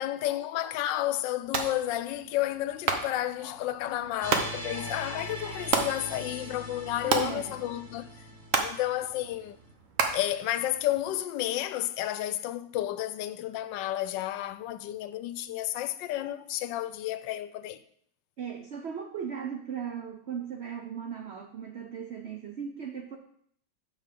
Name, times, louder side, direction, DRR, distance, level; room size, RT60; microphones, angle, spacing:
voice 1, 0.0-8.1 8.6-9.6 10.1-17.8, left 13 dB, 80° left, 1.3 m, -31 dB
sound 1, 1.4-11.2, right 5 dB, 55° right, 1.1 m, -34 dB
sound 2, 4.2-9.3, equal, 30° right, 0.3 m, -41 dB
voice 2, 7.0-7.6 18.4-23.2, right 7 dB, 80° right, 0.6 m, -37 dB
5.8 x 5.5 x 6.7 m
omnidirectional pair, 2.0 m